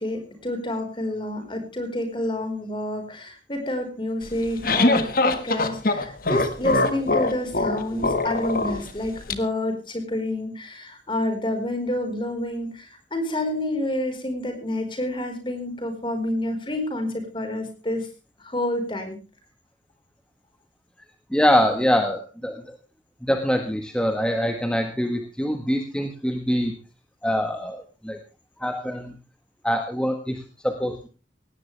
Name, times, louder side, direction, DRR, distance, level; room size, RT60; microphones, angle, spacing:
voice 1, 0.0-18.1 18.4-19.2 21.7-21.8, left 1 dB, 30° left, 5 dB, 4.7 m, -28 dB
sound 1, 4.3-9.3, left 2 dB, 50° left, 1.6 m, -23 dB
voice 2, 21.3-22.8 23.2-26.7 27.2-28.2 28.6-29.2 29.6-31.1, equal, 5° left, 5 dB, 1.4 m, -24 dB
18.5 x 17.0 x 3.4 m, 0.33 s
head